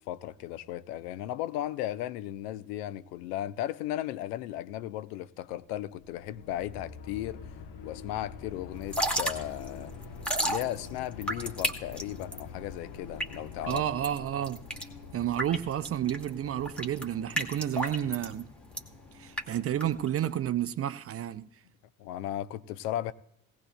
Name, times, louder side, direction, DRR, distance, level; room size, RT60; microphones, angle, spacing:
voice 1, 0.0-7.4 7.8-9.9 10.4-13.8 22.0-23.1, left 13 dB, 70° left, 0.6 m, -36 dB
sound 1, 5.7-20.5, left 5 dB, 50° left, 1.0 m, -47 dB
Drip / Trickle dribble, 8.8-20.4, right 1 dB, ahead, 1.4 m, -34 dB
voice 2, 13.7-14.6 15.1-18.5 19.1-21.5, right 11 dB, 30° right, 0.5 m, -31 dB
18.0 x 17.0 x 2.2 m
figure-of-eight pair, 55°, 50 cm